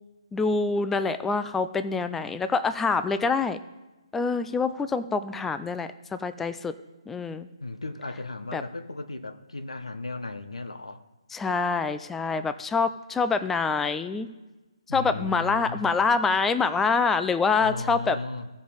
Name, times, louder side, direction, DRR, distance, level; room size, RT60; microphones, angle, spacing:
voice 1, 0.3-3.6 4.1-6.7 7.1-7.5 8.5-8.6 11.3-14.3 14.9-18.2, left 4 dB, 5° left, 0.3 m, -26 dB
voice 2, 7.6-11.0 14.9-15.9 17.6-18.5, left 2 dB, 80° left, 0.9 m, -36 dB
15.0 x 5.2 x 5.1 m
figure-of-eight pair, 140°, 3 cm